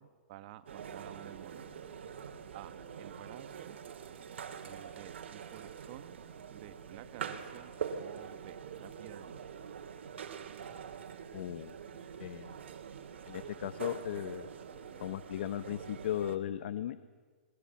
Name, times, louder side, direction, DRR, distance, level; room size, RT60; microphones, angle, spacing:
voice 1, 0.0-1.7 2.5-3.8 4.6-6.2 6.5-7.7 8.0-9.4, right 14 dB, 45° right, 12 dB, 1.3 m, -51 dB
sound 1, 0.7-16.4, right 7 dB, 70° right, 2.7 m, -45 dB
voice 2, 11.3-11.7 12.2-12.6 13.3-14.5 15.0-17.0, left 11 dB, 65° left, 12 dB, 1.1 m, -37 dB
29.0 x 21.0 x 7.2 m, 1.4 s
hypercardioid pair, 140°, 6 cm